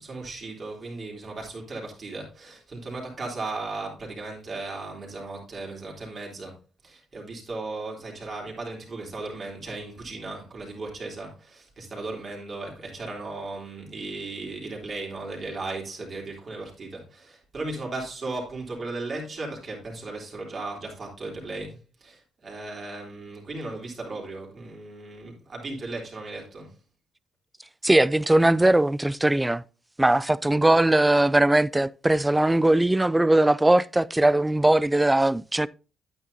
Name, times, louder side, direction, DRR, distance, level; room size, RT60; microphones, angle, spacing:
voice 1, 0.0-6.5 6.8-26.7, right 2 dB, 40° right, 3.5 m, -36 dB
voice 2, 27.8-29.6 30.0-35.7, right 1 dB, 10° right, 0.3 m, -20 dB
9.4 x 9.3 x 2.7 m
cardioid pair, 90°, 0 cm